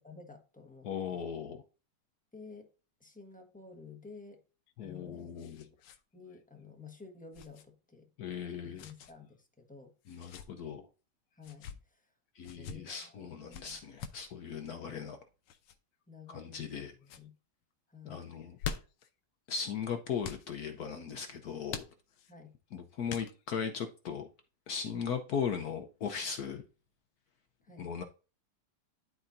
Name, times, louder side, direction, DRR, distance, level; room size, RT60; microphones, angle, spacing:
voice 1, 0.0-1.3 2.3-2.7 3.0-4.4 4.8-5.3 6.1-8.1 8.6-9.9 11.3-12.1 12.4-13.8 14.7-15.1 16.1-17.3 17.9-18.2 22.3-22.5 27.6-27.9, left 5 dB, 5° left, 0.8 m, -52 dB
voice 2, 0.8-1.6 4.8-5.7 8.2-8.8 10.1-10.8 12.4-15.2 16.3-16.9 18.0-18.6 19.5-21.8 22.7-24.3 24.7-26.6 27.8-28.0, left 7 dB, 65° left, 0.9 m, -38 dB
sound 1, 4.7-6.0 6.3-6.4 7.3-7.6 8.8-9.1 10.0-10.5 11.4-11.8 12.4-12.8 13.5-14.3 15.5-15.8 16.4-16.8 17.0-17.3 18.3-19.1 20.2-20.5 21.7-22.3 23.1-23.6, left 7 dB, 80° left, 1.6 m, -44 dB
12.0 x 4.3 x 2.6 m
omnidirectional pair, 2.3 m